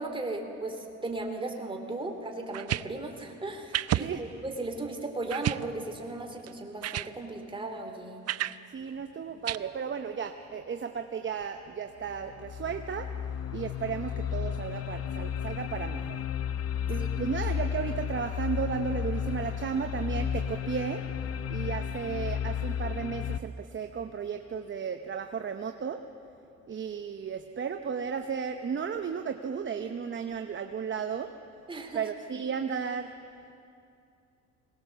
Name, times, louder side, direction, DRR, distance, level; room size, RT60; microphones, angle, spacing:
voice 1, 0.0-8.2 17.0-17.1 31.7-32.0, right 2 dB, 15° right, 3 dB, 2.6 m, -36 dB
sound 1, 2.5-2.9 3.7-4.1 4.6-4.7 5.3-5.7 6.5-6.6 6.8-7.1 8.3-8.6 9.5-9.6, right 13 dB, 55° right, 0.5 m, -30 dB
voice 2, 8.7-13.1 13.5-16.2 16.9-21.0 21.5-26.0 26.7-31.3 31.9-33.1, right 6 dB, 40° right, 6 dB, 0.9 m, -34 dB
sound 2, 11.4-11.5 12.0-23.4, left 8 dB, 50° left, 0.7 m, -33 dB
21.0 x 18.0 x 6.9 m, 2.6 s
cardioid pair, 90°, 30 cm